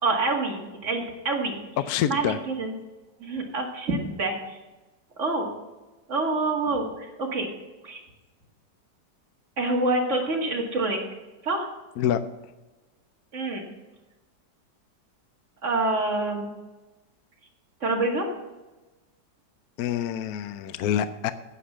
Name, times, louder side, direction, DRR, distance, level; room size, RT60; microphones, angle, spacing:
voice 1, 0.0-1.6 2.1-2.8 3.2-4.6 5.2-5.5 6.1-7.5 7.8-8.0 9.6-11.0 11.4-11.7 13.3-13.7 15.6-16.5 17.8-18.3, right 2 dB, 40° right, 1 dB, 2.2 m, -26 dB
voice 2, 1.8-2.4 12.0-12.2 19.8-21.3, left 10 dB, 70° left, 12 dB, 1.0 m, -26 dB
10.0 x 8.1 x 7.3 m, 1.1 s
omnidirectional pair, 1.9 m